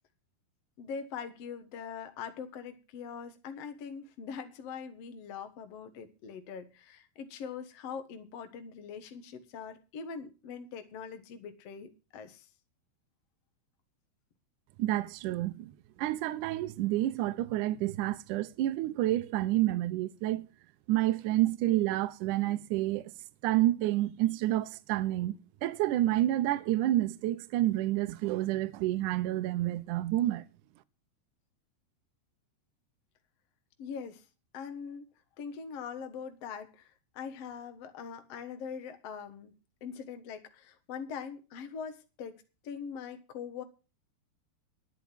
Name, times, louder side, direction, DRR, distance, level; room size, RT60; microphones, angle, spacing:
voice 1, 0.8-12.5 33.8-34.2 34.5-35.1 35.4-39.5 39.8-43.6, left 6 dB, 60° left, 1.7 m, -42 dB
voice 2, 14.8-15.7 16.0-20.5 20.9-23.1 23.4-30.5, right 15 dB, 80° right, 1.8 m, -29 dB
11.5 x 10.5 x 5.8 m
omnidirectional pair, 4.6 m